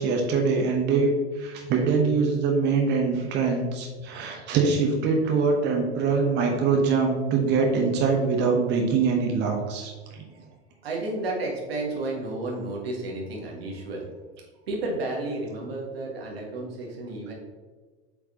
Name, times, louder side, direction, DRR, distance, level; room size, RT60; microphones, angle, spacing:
voice 1, 0.0-10.2, right 4 dB, 35° right, 1 dB, 1.1 m, -23 dB
voice 2, 10.8-14.0 14.7-17.3, right 2 dB, 65° right, -1 dB, 1.8 m, -32 dB
8.0 x 4.5 x 2.8 m, 1.4 s
figure-of-eight pair, 85°, 32 cm